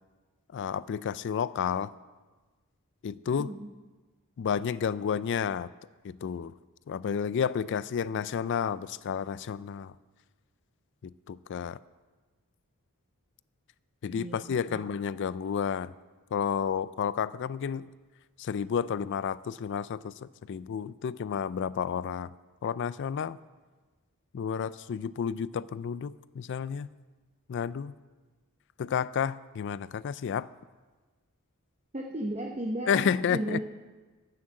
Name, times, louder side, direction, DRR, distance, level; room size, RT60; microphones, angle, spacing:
voice 1, 0.5-1.9 3.0-3.5 4.4-5.7 6.0-6.5 6.9-9.9 11.0-11.8 14.0-15.9 16.3-17.8 18.4-22.3 22.6-23.4 24.3-26.9 27.5-27.9 28.8-30.5 32.9-33.6, left 7 dB, 55° left, 18 dB, 0.3 m, -31 dB
voice 2, 3.2-3.7 14.1-14.4 14.7-14.8 31.9-33.6, right 1 dB, 30° right, 2 dB, 0.8 m, -35 dB
11.0 x 8.9 x 7.6 m, 1.3 s
head